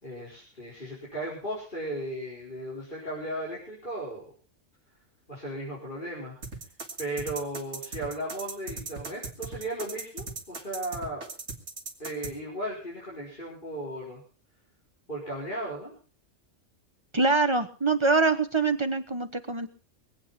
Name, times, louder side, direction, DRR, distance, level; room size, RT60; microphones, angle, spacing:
voice 1, 0.0-4.3 5.3-6.4 7.0-11.3 12.0-14.2 15.1-15.9, right 1 dB, 40° left, -6 dB, 4.9 m, -36 dB
sound 1, 6.4-12.3, right 3 dB, 70° right, 2.5 m, -38 dB
voice 2, 17.1-19.7, right 3 dB, 25° right, 9 dB, 1.1 m, -24 dB
22.0 x 8.7 x 5.8 m, 0.37 s
omnidirectional pair, 1.3 m